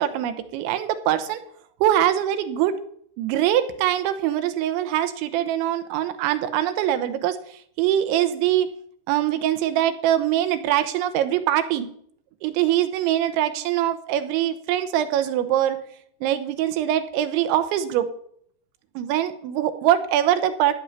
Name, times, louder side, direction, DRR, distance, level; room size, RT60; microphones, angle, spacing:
voice 1, 0.0-1.4 1.8-2.8 3.2-7.4 7.8-8.7 9.1-11.9 12.4-15.8 16.2-18.1 19.0-20.7, right 11 dB, 80° right, 9 dB, 3.3 m, -23 dB
16.5 x 5.5 x 9.7 m, 0.67 s
omnidirectional pair, 5.5 m